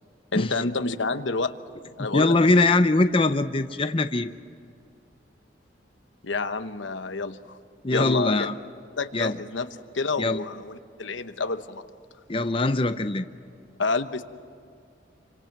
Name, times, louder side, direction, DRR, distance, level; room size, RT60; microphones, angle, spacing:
voice 1, 0.3-1.5 2.0-2.7 6.2-7.6 7.9-8.5 9.0-9.7 9.9-11.8 13.8-14.2, left 3 dB, 90° left, 9 dB, 1.1 m, -28 dB
voice 2, 2.1-4.3 7.8-8.5 9.1-9.3 10.2-10.4 12.3-13.3, left 2 dB, 30° left, 9 dB, 0.7 m, -22 dB
28.5 x 26.0 x 6.0 m, 2.3 s
head